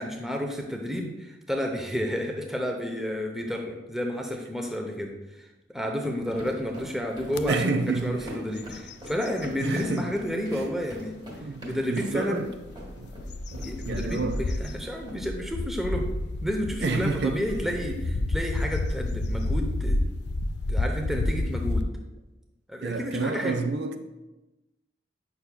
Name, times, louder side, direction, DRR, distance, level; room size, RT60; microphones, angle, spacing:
voice 1, 0.0-5.5 5.7-11.2 11.6-12.5 13.6-16.1 16.4-20.0 20.7-21.9 22.7-23.6, equal, ahead, 0.6 m, -31 dB
sound 1, 6.1-15.1, equal, 25° right, 1.4 m, -43 dB
sound 2, 7.3-7.5 8.0-8.2 8.6-10.1 10.6-10.7 12.5-21.8, left 2 dB, 65° left, 0.4 m, -30 dB
voice 2, 7.5-8.2 9.6-10.1 10.5-10.6 11.4-12.5 13.0-13.1 13.5-14.4 16.8-17.4 22.8-24.0, right 3 dB, 60° right, 0.4 m, -29 dB
8.2 x 5.8 x 2.2 m
head